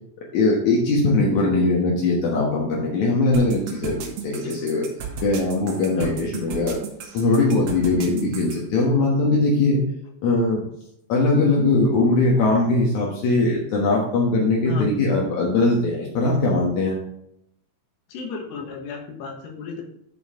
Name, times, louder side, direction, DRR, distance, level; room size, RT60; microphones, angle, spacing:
voice 1, 0.3-4.9 5.2-6.8 7.1-9.8 10.2-10.6 11.1-17.0, left 2 dB, 60° left, -3 dB, 2.2 m, -20 dB
sound 1, 3.3-8.6, right 6 dB, 65° right, 2.4 m, -34 dB
voice 2, 18.1-19.8, left 5 dB, 80° left, 1 dB, 3.6 m, -34 dB
11.0 x 4.7 x 3.7 m, 0.74 s
omnidirectional pair, 4.8 m